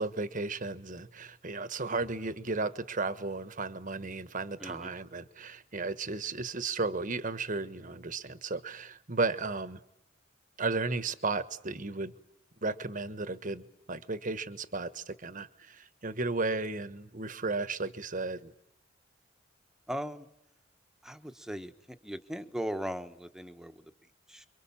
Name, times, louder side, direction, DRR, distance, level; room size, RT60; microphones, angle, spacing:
voice 1, 0.0-9.8 10.6-12.1 12.6-18.5, right 3 dB, 45° right, 1.3 m, -34 dB
voice 2, 4.6-4.9 19.9-20.3 21.0-23.9 24.3-24.5, equal, 5° right, 1.3 m, -38 dB
30.0 x 24.0 x 7.3 m
head